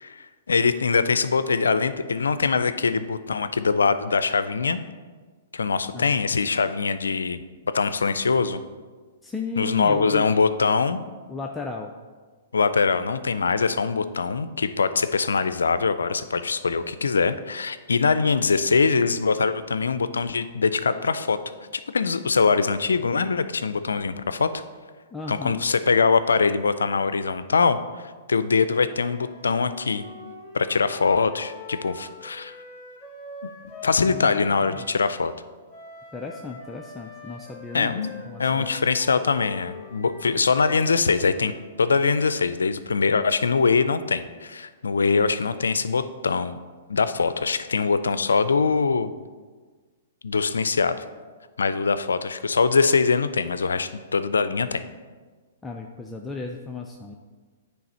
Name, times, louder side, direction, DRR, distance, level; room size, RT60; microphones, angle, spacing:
voice 1, 0.0-4.8 5.5-7.4 7.7-8.6 9.6-11.0 12.5-21.4 21.9-24.5 25.3-30.0 30.5-32.6 33.8-35.3 37.7-41.5 41.8-46.6 46.9-49.1 50.2-51.0 51.6-54.8, left 4 dB, 85° left, 13 dB, 0.4 m, -23 dB
voice 2, 9.2-10.2 11.3-11.9 25.1-25.6 34.0-34.8 36.1-38.7 55.6-57.2, left 4 dB, 10° left, 1 dB, 0.4 m, -35 dB
Wind instrument woodwind instrument, 28.6-35.0 35.7-41.7, left 4 dB, 30° left, 2.1 m, -43 dB
9.3 x 3.4 x 4.3 m, 1.4 s
hypercardioid pair, 125°, 0 cm